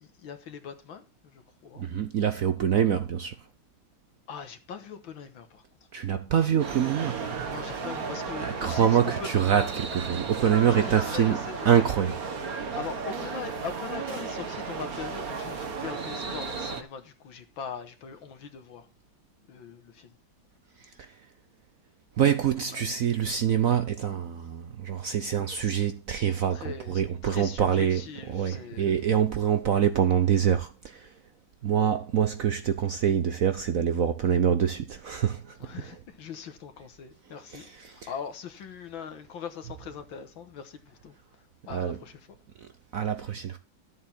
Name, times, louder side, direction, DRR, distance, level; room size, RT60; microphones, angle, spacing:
voice 1, 0.0-1.9 4.3-5.6 7.5-9.3 10.4-11.9 12.7-18.9 19.5-20.1 26.2-28.9 35.6-42.2, left 6 dB, 65° left, 2.0 m, -41 dB
voice 2, 1.8-3.5 5.9-7.3 8.4-11.4 11.6-12.2 20.8-21.2 22.2-31.2 31.6-35.9 37.5-38.1 41.7-42.0 42.6-43.6, right 8 dB, 75° right, 0.7 m, -25 dB
sound 1, 6.6-16.8, right 5 dB, 45° right, 1.6 m, -34 dB
13.0 x 7.6 x 4.3 m
omnidirectional pair, 2.4 m